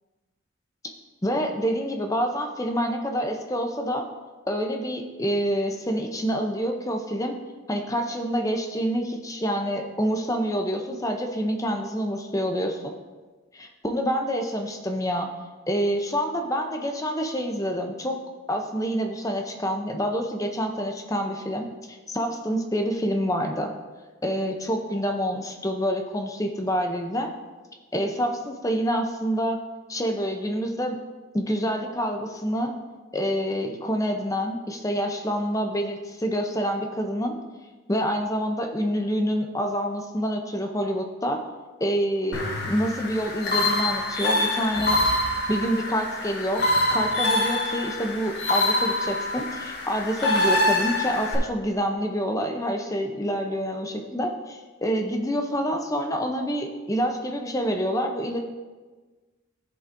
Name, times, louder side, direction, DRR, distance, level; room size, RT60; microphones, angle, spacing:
voice 1, 1.2-4.0 4.5-7.4 7.7-12.9 13.5-15.3 15.7-18.2 18.5-23.7 24.2-27.3 27.9-29.6 29.9-31.0 31.3-32.7 33.1-37.4 37.9-41.4 41.8-45.0 45.5-58.4, equal, 15° left, 4 dB, 0.6 m, -27 dB
sound 1, 42.3-51.4, left 1 dB, 50° left, 1.5 m, -25 dB
15.0 x 5.3 x 2.6 m, 1.3 s
head